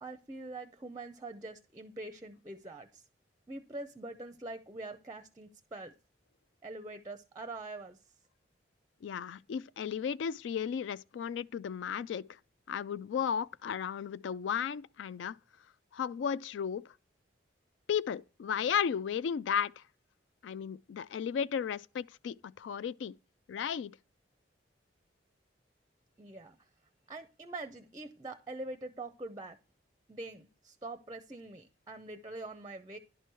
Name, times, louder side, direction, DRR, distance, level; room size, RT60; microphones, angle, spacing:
voice 1, 0.0-3.0 3.5-5.9 6.6-8.0 26.2-26.6 27.1-29.6 30.1-33.0, right 2 dB, 20° right, 0.5 m, -44 dB
voice 2, 9.0-12.2 12.7-15.4 15.9-16.8 17.9-19.7 20.4-23.1 23.5-23.9, left 7 dB, 80° left, 0.3 m, -34 dB
11.0 x 4.6 x 4.6 m
head